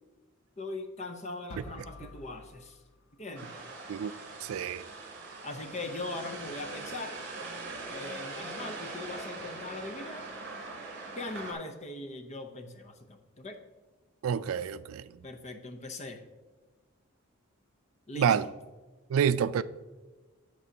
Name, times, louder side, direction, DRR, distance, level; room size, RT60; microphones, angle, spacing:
voice 1, 0.6-2.8 3.2-3.5 5.4-7.2 7.9-10.2 11.2-13.6 15.2-16.2 18.1-18.5, left 2 dB, 30° left, 0.7 m, -40 dB
sound 1, 1.5-3.5, left 2 dB, 85° left, 0.7 m, -50 dB
sound 2, 3.4-11.5, right 3 dB, 55° right, 2.7 m, -42 dB
voice 2, 4.4-4.8 14.2-15.0 18.2-18.4 19.1-19.6, right 8 dB, 75° right, 0.3 m, -27 dB
11.0 x 7.6 x 2.8 m
head